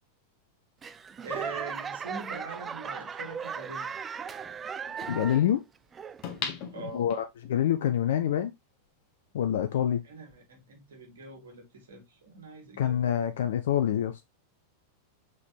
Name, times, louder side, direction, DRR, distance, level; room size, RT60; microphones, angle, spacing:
Laughter / Clapping / Crowd, 0.8-5.6 5.9-6.4 7.0-7.1, right 6 dB, 20° right, 0.4 m, -37 dB
voice 1, 1.2-4.0 6.7-7.1 10.0-13.0, right 3 dB, 60° right, 2.9 m, -43 dB
voice 2, 5.1-5.6 6.9-7.2 7.5-8.5 9.3-10.0 12.8-14.2, left 10 dB, 60° left, 0.6 m, -26 dB
sound 1, 6.2-7.6 8.1-8.2, left 7 dB, 40° left, 1.8 m, -37 dB
6.2 x 4.8 x 3.2 m
figure-of-eight pair, 90°, 0 cm